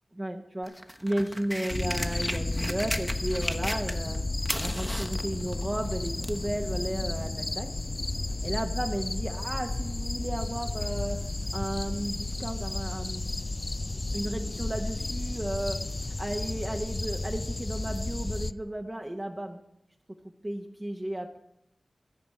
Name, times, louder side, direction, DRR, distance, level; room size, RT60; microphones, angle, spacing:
voice 1, 0.1-0.7 1.0-4.3 4.6-7.7 8.4-11.2 11.5-13.3 14.1-19.6 20.4-21.4, right 1 dB, 20° right, 3 dB, 1.0 m, -34 dB
sound 1, 0.6-4.2 4.4-6.5 7.3-7.4, equal, 5° left, 1.0 m, -35 dB
sound 2, 1.7-18.5, left 2 dB, 40° left, 0.4 m, -32 dB
13.5 x 5.2 x 8.4 m, 0.81 s
wide cardioid pair, 65°, 0 cm